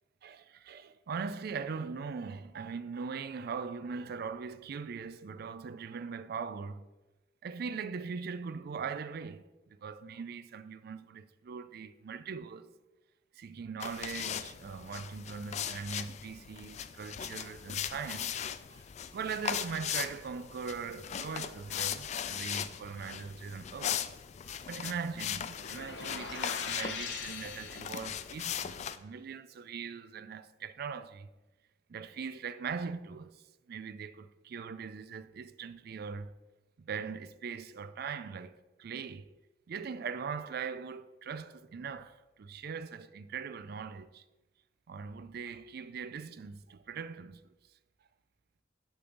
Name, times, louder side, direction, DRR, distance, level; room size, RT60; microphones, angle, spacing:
voice 1, 0.2-6.9 7.4-9.5 9.8-12.8 13.3-18.9 19.1-24.0 24.4-31.3 31.9-36.3 36.8-39.3 39.7-44.2 44.9-47.4, right 5 dB, 60° right, 0.4 m, -41 dB
sound 1, 13.8-29.0, left 9 dB, 40° left, 0.3 m, -39 dB
sound 2, 25.5-28.4, left 5 dB, 80° left, 0.9 m, -42 dB
6.6 x 6.2 x 3.9 m
head